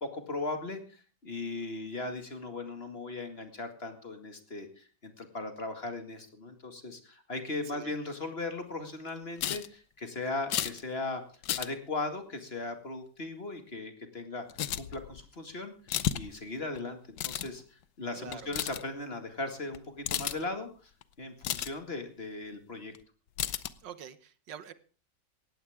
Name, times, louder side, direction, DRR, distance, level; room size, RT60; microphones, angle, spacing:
voice 1, 0.0-11.2 11.6-14.4 14.8-15.7 16.1-20.9 21.2-22.9, left 2 dB, 35° left, 6 dB, 2.3 m, -38 dB
sound 1, 9.4-9.7 10.5-10.8 11.4-11.7 14.5-15.2 15.9-16.3 16.6-16.8 17.2-17.5 18.3-18.8 19.7-19.8 20.1-20.4 21.0-21.1 21.4-21.7 23.0-23.1 23.4-23.7, left 11 dB, 80° left, 1.5 m, -32 dB
voice 2, 18.2-18.5 23.8-24.7, right 8 dB, 90° right, 13 dB, 1.8 m, -45 dB
18.5 x 14.5 x 3.6 m, 0.38 s
omnidirectional pair, 1.9 m